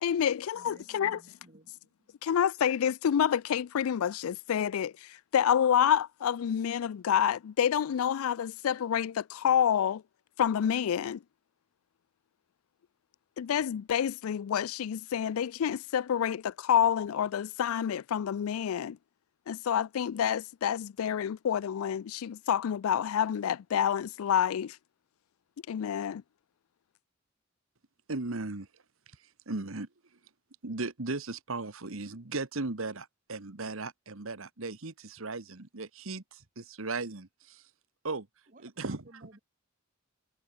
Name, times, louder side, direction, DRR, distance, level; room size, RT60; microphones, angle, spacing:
voice 1, 0.0-1.2 2.2-10.0 10.4-11.2 13.4-19.0 19.5-24.8 25.7-26.2, left 9 dB, 85° left, 0.4 m, -28 dB
voice 2, 0.5-2.1 38.5-39.4, right 1 dB, 40° right, 2.5 m, -56 dB
voice 3, 28.1-28.7 29.5-29.9 30.6-37.6 38.0-38.3 38.6-39.0, right 3 dB, 75° right, 1.5 m, -37 dB
head